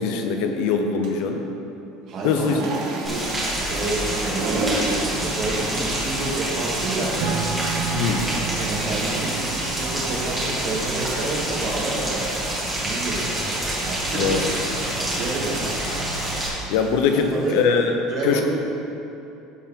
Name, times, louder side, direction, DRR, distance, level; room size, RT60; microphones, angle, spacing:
voice 1, 0.0-1.4 2.2-2.6 7.9-8.3 14.1-14.5 16.7-17.9 18.2-18.4, left 5 dB, 70° left, 5 dB, 0.7 m, -22 dB
sound 1, 1.0-1.4 2.0-17.9, right 3 dB, 60° right, 1.3 m, -36 dB
voice 2, 2.1-2.6 2.9-3.3 3.7-7.2 7.8-8.3 8.6-12.4 12.8-13.5 13.8-14.3 15.0-15.6 17.1-17.6 18.1-18.4, right 2 dB, 40° right, -4 dB, 1.8 m, -29 dB
Rain, 3.1-16.5, right 1 dB, 10° right, 1.8 m, -27 dB
Acoustic guitar / Strum, 7.2-12.2, right 6 dB, 85° right, 0.9 m, -32 dB
13.0 x 4.7 x 3.7 m, 2.8 s
cardioid pair, 150°, 0 cm